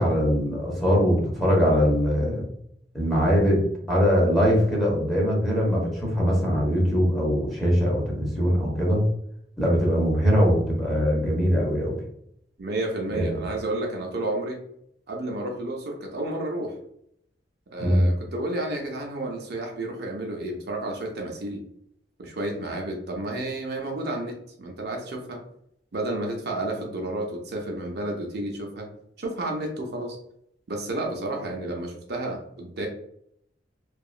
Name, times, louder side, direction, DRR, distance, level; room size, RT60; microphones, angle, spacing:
voice 1, 0.0-2.5 2.9-3.6 3.9-9.0 9.6-12.0 13.1-13.4 17.8-18.1, equal, ahead, -4 dB, 0.8 m, -22 dB
voice 2, 12.6-14.6 15.1-16.8 17.7-21.7 22.2-25.4 25.9-28.9 29.2-30.2 30.7-32.9, right 1 dB, 60° right, 1 dB, 0.5 m, -31 dB
2.8 x 2.3 x 2.3 m, 0.72 s
head